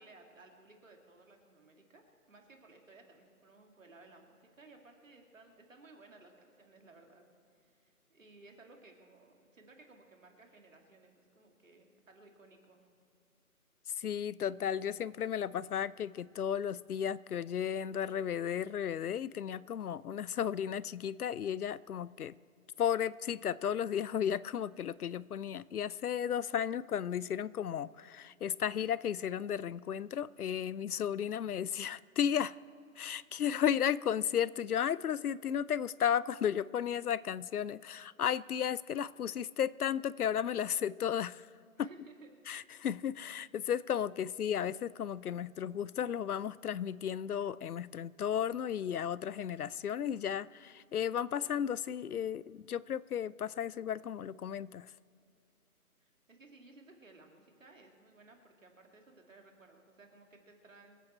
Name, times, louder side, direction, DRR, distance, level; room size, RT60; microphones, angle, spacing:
voice 1, 0.0-7.2 7.6-12.9 41.8-42.3 56.0-61.0, right 2 dB, 55° right, 2 dB, 2.5 m, -58 dB
voice 2, 14.0-22.3 22.8-32.5 33.0-41.5 41.8-41.9 42.5-54.9, left 9 dB, 75° left, 20 dB, 0.5 m, -34 dB
24.5 x 8.3 x 4.3 m, 2.4 s
figure-of-eight pair, 170°, 45 cm